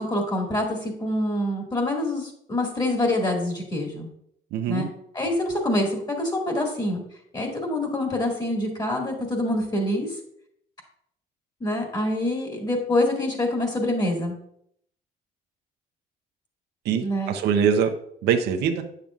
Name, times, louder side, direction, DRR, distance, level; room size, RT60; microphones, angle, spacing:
voice 1, 0.0-4.1 4.7-4.9 5.1-7.0 7.3-10.1 11.6-14.3 17.0-17.3, left 1 dB, 25° left, 1 dB, 2.0 m, -26 dB
voice 2, 4.5-4.9 16.8-17.9 18.2-18.8, right 7 dB, 80° right, 5 dB, 0.8 m, -23 dB
8.7 x 6.7 x 2.4 m, 0.71 s
cardioid pair, 110°, 17 cm